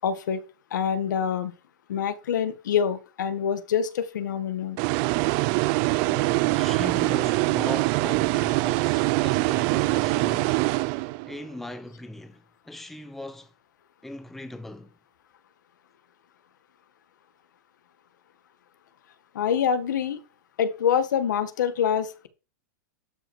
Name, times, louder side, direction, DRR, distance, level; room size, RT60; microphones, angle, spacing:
voice 1, 0.0-0.4 0.7-1.5 1.9-4.8 19.3-20.2 20.6-22.3, left 8 dB, 80° left, 1.9 m, -26 dB
sound 1, 4.8-11.4, right 23 dB, 35° right, 0.5 m, -24 dB
voice 2, 6.0-10.6 11.2-13.5 14.0-14.9, left 1 dB, 5° left, 0.9 m, -39 dB
12.5 x 5.7 x 6.4 m
supercardioid pair, 160°, 10 cm